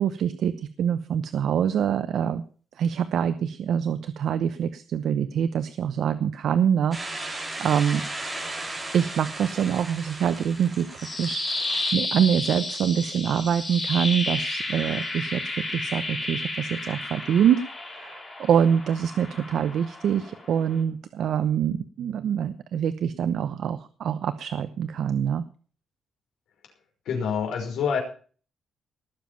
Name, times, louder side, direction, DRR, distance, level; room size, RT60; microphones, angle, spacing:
voice 1, 0.0-2.4 2.8-8.1 8.9-25.4, right 8 dB, 60° right, 11 dB, 0.8 m, -25 dB
sound 1, 6.9-11.9, right 2 dB, 10° right, 3.7 m, -36 dB
sound 2, 10.7-20.8, left 2 dB, 20° left, 5.0 m, -32 dB
voice 2, 27.1-28.0, left 6 dB, 75° left, 3 dB, 5.7 m, -26 dB
19.0 x 7.4 x 5.9 m, 0.41 s
cardioid pair, 175°, 0 cm